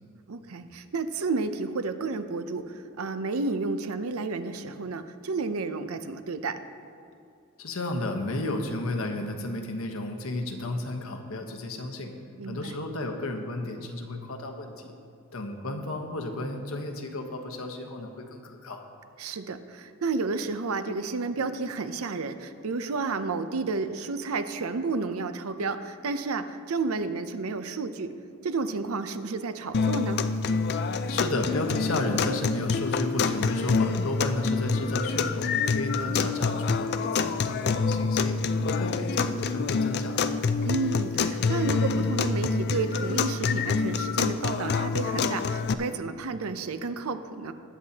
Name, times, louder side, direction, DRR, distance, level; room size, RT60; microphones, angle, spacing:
voice 1, 0.3-6.6 12.4-12.8 19.2-28.1 28.4-30.3 36.0-36.4 40.6-47.5, right 4 dB, 80° right, 10 dB, 0.6 m, -31 dB
voice 2, 7.6-12.1 12.5-14.9 15.3-18.9 31.1-40.2, left 2 dB, 75° left, 4 dB, 1.1 m, -33 dB
sound 1, 29.7-45.7, left 4 dB, 50° left, 0.4 m, -27 dB
20.5 x 8.1 x 2.9 m, 2.5 s
head